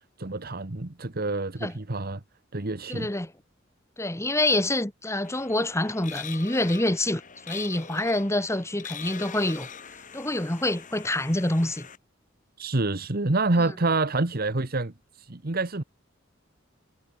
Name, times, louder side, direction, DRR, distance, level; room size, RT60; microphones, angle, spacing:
voice 1, 0.2-2.2 2.5-3.1 12.6-15.8, right 2 dB, 50° right, 1.3 m, -27 dB
voice 2, 2.9-3.3 4.0-7.2 7.5-9.7 10.1-11.9 13.6-13.7, left 1 dB, 15° left, 2.0 m, -26 dB
sound 1, 5.2-12.0, left 7 dB, 40° left, 1.9 m, -43 dB
head